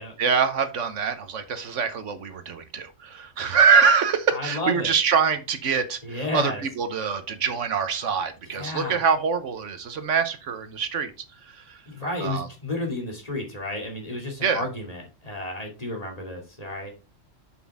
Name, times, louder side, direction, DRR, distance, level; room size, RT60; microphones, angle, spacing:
voice 1, 0.2-11.1 11.4-11.8 12.2-12.5 14.4-14.6, right 6 dB, 70° right, 10 dB, 1.2 m, -24 dB
voice 2, 4.3-4.9 6.0-6.6 8.5-9.0 11.9-16.9, left 2 dB, 30° left, 0 dB, 2.6 m, -32 dB
7.7 x 6.1 x 3.5 m, 0.30 s
omnidirectional pair, 1.3 m